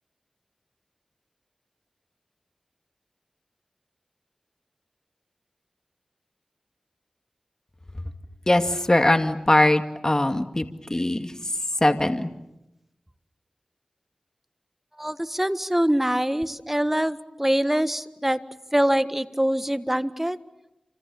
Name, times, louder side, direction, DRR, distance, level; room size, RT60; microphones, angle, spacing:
voice 1, 8.5-11.3 11.8-12.3, left 1 dB, 25° left, 7 dB, 2.2 m, -21 dB
voice 2, 15.0-18.4 18.7-20.4, equal, 10° right, 11 dB, 1.6 m, -24 dB
29.0 x 27.0 x 7.1 m, 0.88 s
wide cardioid pair, 50°, 2 cm